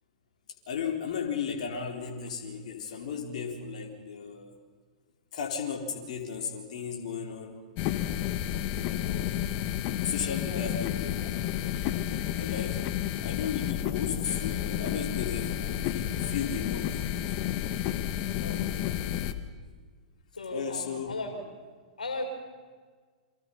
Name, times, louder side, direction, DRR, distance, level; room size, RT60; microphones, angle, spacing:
voice 1, 0.7-4.5 5.3-7.6 8.8-9.4 10.0-11.3 12.3-12.8 13.2-17.2 20.5-21.1, left 6 dB, 60° left, 2 dB, 4.3 m, -35 dB
sound 1, 7.8-19.3, left 11 dB, 45° left, 1.6 m, -31 dB
voice 2, 10.5-11.1 18.4-18.9 20.3-21.4 22.0-22.3, left 2 dB, 85° left, 3 dB, 5.3 m, -37 dB
29.5 x 25.5 x 5.6 m, 1.5 s
figure-of-eight pair, 105°, 4 cm